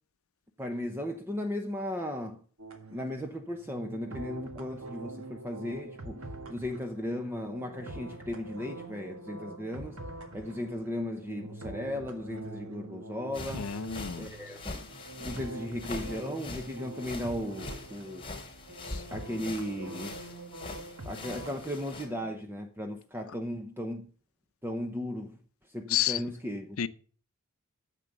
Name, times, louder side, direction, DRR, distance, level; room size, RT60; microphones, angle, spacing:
voice 1, 0.6-2.4 2.9-6.2 6.5-10.0 10.3-13.7 14.2-14.9 15.2-18.2 19.1-20.2 21.0-24.1 24.6-25.4 25.7-26.8, left 1 dB, 10° right, 0.9 m, -36 dB
sound 1, 2.6-22.2, right 2 dB, 80° right, 1.6 m, -45 dB
sound 2, 13.3-22.0, left 3 dB, 25° left, 3.2 m, -43 dB
voice 2, 13.6-14.3 25.9-26.2 26.8-26.9, left 11 dB, 85° left, 0.6 m, -29 dB
10.0 x 7.5 x 6.7 m
head